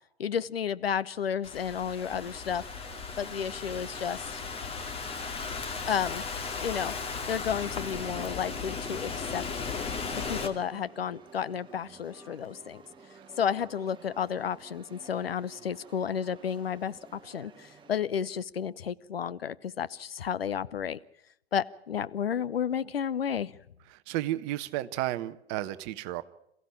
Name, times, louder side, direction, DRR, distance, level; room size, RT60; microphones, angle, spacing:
voice 1, 0.2-2.7 3.2-4.4 5.9-6.2 6.6-6.9 7.3-9.4 10.1-12.8 13.4-21.0 21.5-23.5, left 8 dB, 70° left, 16 dB, 0.8 m, -32 dB
Thunderstorm / Rain, 1.4-10.5, left 5 dB, 20° left, 2.2 m, -36 dB
sound 1, 2.0-18.0, right 5 dB, 15° right, 2.1 m, -53 dB
voice 2, 24.1-26.2, right 15 dB, 35° right, 14 dB, 1.1 m, -32 dB
27.5 x 15.5 x 8.8 m, 0.77 s
figure-of-eight pair, 100°, 31 cm